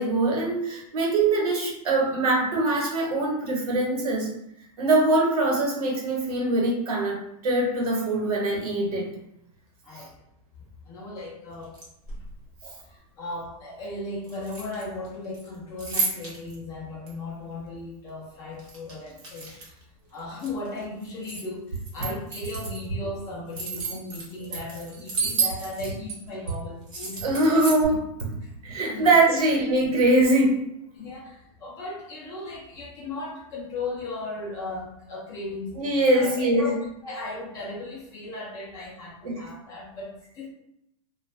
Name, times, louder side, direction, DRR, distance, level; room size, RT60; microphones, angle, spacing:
voice 1, 0.0-4.3 4.8-9.1 12.6-12.7 27.2-28.1 28.6-30.6 35.7-36.7 39.2-39.4, right 2 dB, 75° right, -1 dB, 1.0 m, -23 dB
voice 2, 9.8-10.2 10.9-11.8 12.9-19.8 20.1-27.2 28.4-28.5 28.9-29.4 30.9-40.5, left 2 dB, 20° left, -4 dB, 0.4 m, -36 dB
sound 1, 11.6-12.4 14.2-15.1 15.3-16.6 17.1-17.2 18.6-19.8 20.2-21.4 21.7-22.8 23.3-26.2 26.5-26.6 26.9-27.9, right 5 dB, 20° right, 0.7 m, -32 dB
2.4 x 2.2 x 3.1 m, 0.79 s
supercardioid pair, 165°, 19 cm